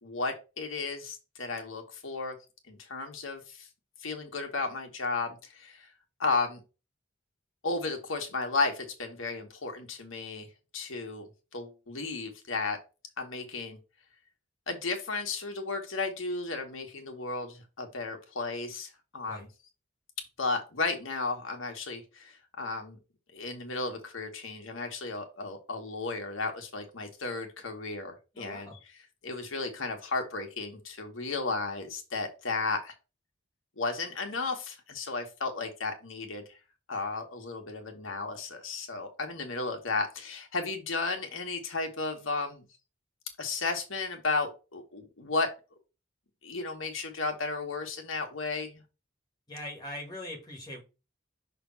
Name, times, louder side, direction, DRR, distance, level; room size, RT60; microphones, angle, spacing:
voice 1, 0.0-2.3 2.7-3.7 4.0-5.9 6.2-6.6 7.6-10.5 10.7-12.8 13.2-13.8 14.7-19.5 20.4-23.0 23.3-28.8 29.2-32.9 33.8-36.6 36.9-42.6 43.4-45.5 46.4-48.8, left 3 dB, 90° left, 3 dB, 1.5 m, -34 dB
voice 2, 28.3-28.8 49.5-50.8, left 1 dB, 20° left, 0 dB, 1.8 m, -41 dB
6.0 x 3.4 x 5.7 m, 0.30 s
head